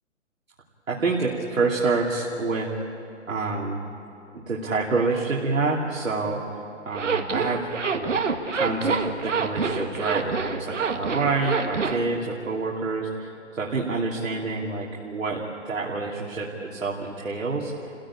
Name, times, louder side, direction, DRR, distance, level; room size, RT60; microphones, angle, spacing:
voice 1, 0.9-2.7 3.3-3.8 4.3-6.4 6.8-7.7 7.9-8.2 8.5-15.4 15.6-17.9, right 3 dB, 85° right, -4 dB, 3.0 m, -27 dB
Zipper (clothing), 6.9-12.0, right 5 dB, 65° right, 2.1 m, -26 dB
29.5 x 16.0 x 8.7 m, 2.9 s
hypercardioid pair, 180°, 39 cm